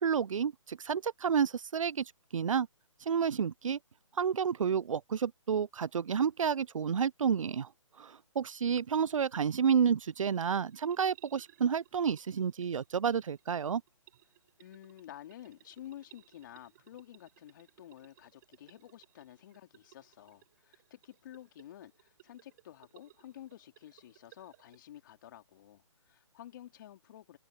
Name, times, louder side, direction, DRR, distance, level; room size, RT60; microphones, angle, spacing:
voice 1, 0.0-2.0 2.3-2.7 3.1-3.8 4.2-7.7 8.0-13.8, right 7 dB, 80° right, 0.4 m, -30 dB
sound 1, 8.5-24.8, right 14 dB, 35° right, 5.9 m, -63 dB
voice 2, 14.6-27.4, left 12 dB, 40° left, 3.8 m, -51 dB
hypercardioid pair, 150°, 17 cm